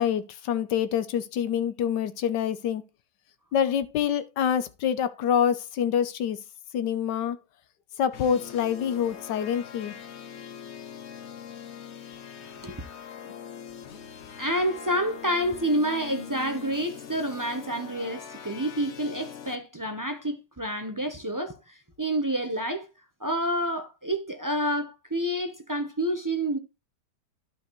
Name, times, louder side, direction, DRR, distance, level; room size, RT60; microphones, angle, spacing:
voice 1, 0.0-2.8 3.5-6.4 6.7-7.4 8.0-9.9, left 8 dB, 85° left, 1.4 m, -26 dB
sound 1, 8.1-19.6, left 8 dB, 55° left, 0.8 m, -42 dB
voice 2, 12.4-12.8 13.2-13.3 14.4-22.9 23.2-26.6, right 1 dB, 25° right, 0.4 m, -29 dB
12.0 x 5.6 x 3.1 m
omnidirectional pair, 1.8 m